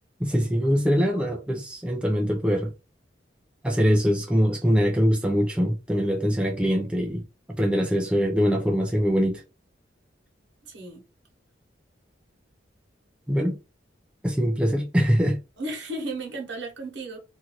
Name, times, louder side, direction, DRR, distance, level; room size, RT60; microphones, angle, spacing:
voice 1, 0.2-2.7 3.6-7.2 7.6-9.4 13.3-13.6 14.2-15.4, equal, 5° right, 0.5 m, -23 dB
voice 2, 10.6-11.0 15.6-17.2, right 2 dB, 75° right, 1.1 m, -34 dB
2.6 x 2.5 x 3.0 m
head